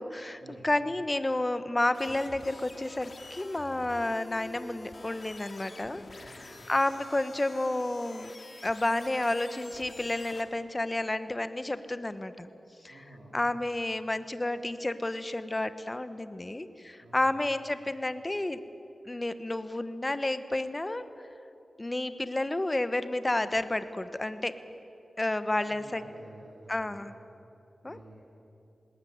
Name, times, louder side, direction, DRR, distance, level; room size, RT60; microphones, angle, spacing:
voice 1, 0.0-8.3 8.6-12.5 12.8-13.0 13.3-18.6 19.0-21.0 21.8-24.5 25.2-26.0 26.7-27.1 27.8-28.0, left 2 dB, 25° left, 12 dB, 1.2 m, -31 dB
sound 1, 1.9-10.4, left 2 dB, 50° left, 2.1 m, -48 dB
voice 2, 6.2-6.7 12.9-13.4 17.0-17.4 25.6-27.1 27.8-28.2, right 1 dB, 80° right, -4 dB, 3.8 m, -52 dB
20.0 x 18.5 x 9.6 m, 2.8 s
wide cardioid pair, 70°, 0 cm